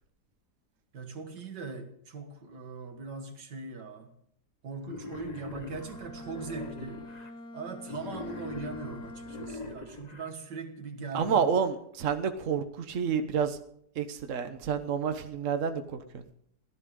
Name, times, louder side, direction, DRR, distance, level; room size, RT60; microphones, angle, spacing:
voice 1, 0.9-4.2 4.6-7.1 7.5-11.5, right 4 dB, 85° right, 2.3 m, -40 dB
Wild animals, 4.8-7.3 7.8-10.3, left 4 dB, 25° left, 1.2 m, -43 dB
Bowed string instrument, 5.7-9.9, left 1 dB, 65° left, 1.7 m, -45 dB
voice 2, 11.1-13.6 14.0-16.0, right 7 dB, 50° right, 1.4 m, -29 dB
23.5 x 16.0 x 3.8 m
omnidirectional pair, 1.8 m